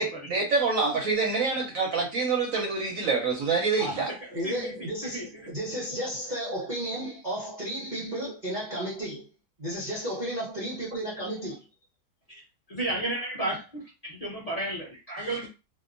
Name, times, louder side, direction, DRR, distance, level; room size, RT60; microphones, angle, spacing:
voice 1, 0.0-4.1, right 4 dB, 65° right, 0.9 m, -26 dB
voice 2, 3.8-9.3 9.6-11.6, right 1 dB, 45° right, 0.6 m, -33 dB
voice 3, 4.4-5.5 12.3-12.4 12.7-15.5, right 1 dB, 30° left, 0.8 m, -33 dB
2.8 x 2.3 x 2.5 m
omnidirectional pair, 1.8 m